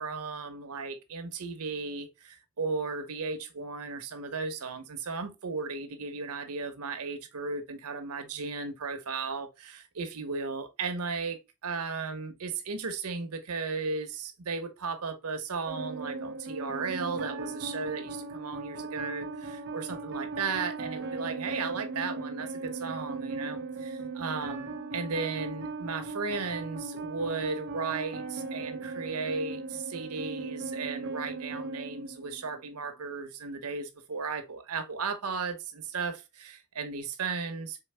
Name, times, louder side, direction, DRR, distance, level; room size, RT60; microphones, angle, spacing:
voice 1, 0.0-37.8, right 4 dB, 80° right, 0.8 m, -35 dB
sound 1, 15.7-32.7, right 3 dB, 50° right, 0.6 m, -38 dB
4.6 x 3.4 x 3.3 m
head